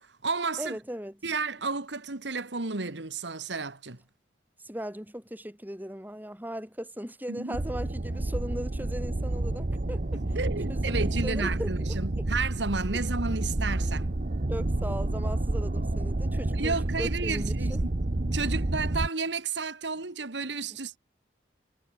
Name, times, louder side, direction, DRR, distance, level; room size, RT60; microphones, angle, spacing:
voice 1, 0.0-0.8 1.2-4.0 7.3-7.6 10.1-14.1 16.5-17.9 18.3-21.0, right 4 dB, 80° right, 1.8 m, -32 dB
voice 2, 0.6-1.2 4.6-10.4 10.7-11.7 14.5-17.8 18.4-18.5, equal, 10° right, 6.0 m, -38 dB
sound 1, 7.5-19.1, right 2 dB, 50° right, 0.9 m, -29 dB
head